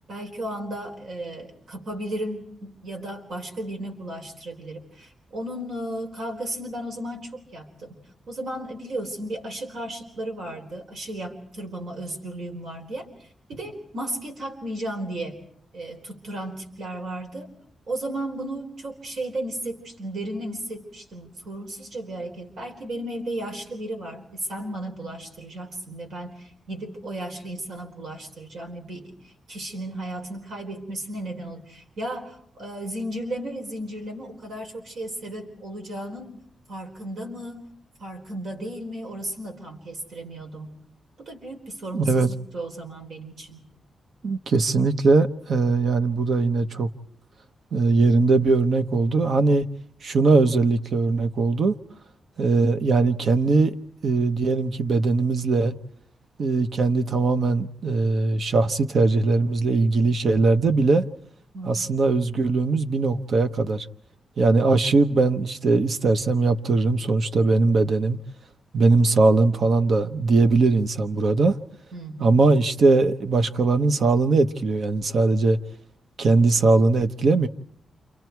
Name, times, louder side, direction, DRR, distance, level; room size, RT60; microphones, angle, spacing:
voice 1, 0.1-8.0 8.3-15.4 15.7-17.5 17.9-36.3 36.7-37.7 38.0-40.7 41.2-43.7 61.5-62.0 71.9-72.4, right 1 dB, 75° right, 4.2 m, -34 dB
voice 2, 41.9-42.3 44.2-46.9 47.7-49.7 50.0-51.7 52.4-53.7 54.0-55.7 56.4-61.1 61.7-63.9 64.4-68.2 68.7-71.6 72.2-75.6 76.2-77.5, right 3 dB, 55° right, 1.1 m, -20 dB
30.0 x 28.0 x 4.6 m
wide cardioid pair, 140°, 0 cm